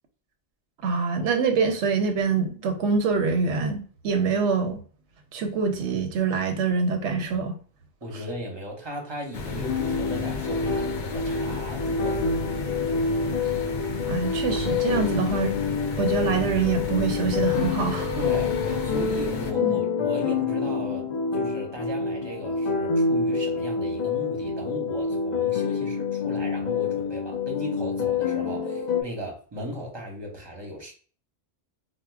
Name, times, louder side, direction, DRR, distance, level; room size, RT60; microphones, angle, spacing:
voice 1, 0.8-4.8 5.3-7.6 14.1-15.6 16.0-18.2 19.6-19.8, right 5 dB, 90° right, 0.9 m, -25 dB
voice 2, 8.0-12.4 18.2-18.6 18.8-21.0 21.3-30.9, equal, 25° right, 0.7 m, -36 dB
sound 1, 9.3-19.5, left 3 dB, 90° left, 0.9 m, -33 dB
sound 2, 9.7-29.0, left 5 dB, 55° left, 0.5 m, -27 dB
4.4 x 2.1 x 2.3 m
omnidirectional pair, 1.2 m